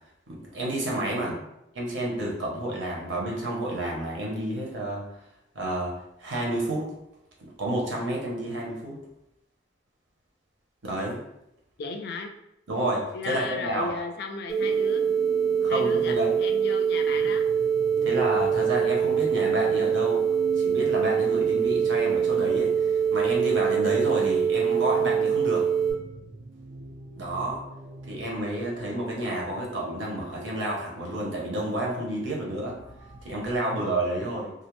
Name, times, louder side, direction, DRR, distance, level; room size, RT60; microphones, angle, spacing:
voice 1, 0.3-1.3 1.8-5.0 5.5-5.9 6.2-6.9 7.6-9.0 10.8-11.2 12.7-13.9 15.6-16.4 18.0-20.2 20.6-25.6 27.1-27.6 28.1-32.8 33.2-34.5, right 1 dB, 85° right, -2 dB, 0.7 m, -30 dB
voice 2, 11.8-12.3 13.1-15.1 15.7-17.4 24.1-24.4 34.1-34.3, left 3 dB, 55° left, 4 dB, 0.3 m, -35 dB
sound 1, 14.5-25.9, right 7 dB, ahead, 0.6 m, -24 dB
sound 2, 14.6-33.6, right 2 dB, 50° right, 0.3 m, -44 dB
2.3 x 2.0 x 3.0 m, 0.83 s
head